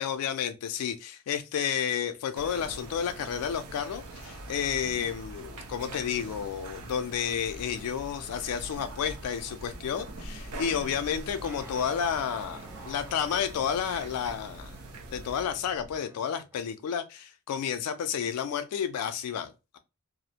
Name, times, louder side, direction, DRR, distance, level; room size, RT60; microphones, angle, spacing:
voice 1, 0.0-14.8 15.1-19.8, left 8 dB, 90° left, 0.3 m, -31 dB
sound 1, 2.4-15.4, right 2 dB, 75° right, 0.6 m, -44 dB
sound 2, 7.3-16.0, equal, 40° right, 1.1 m, -49 dB
sound 3, 11.4-16.6, right 2 dB, 10° right, 0.3 m, -51 dB
2.4 x 2.0 x 2.7 m
head